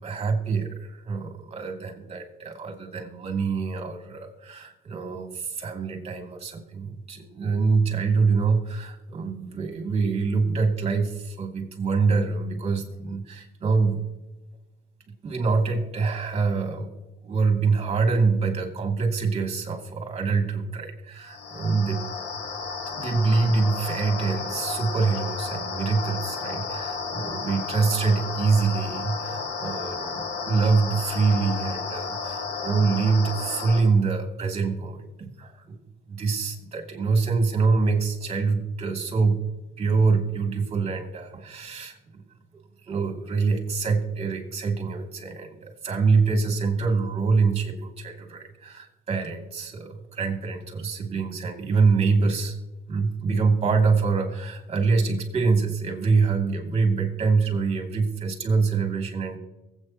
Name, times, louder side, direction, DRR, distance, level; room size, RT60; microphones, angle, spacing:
voice 1, 0.0-14.1 15.2-16.9 17.2-22.1 23.0-35.8 36.1-39.4 39.8-42.2 42.9-52.5 52.9-59.4, right 4 dB, 35° right, 3 dB, 2.6 m, -25 dB
sound 1, 21.2-33.8, left 5 dB, 85° left, 1.9 m, -32 dB
23.5 x 8.4 x 3.0 m, 1.0 s
cardioid pair, 110°, 17 cm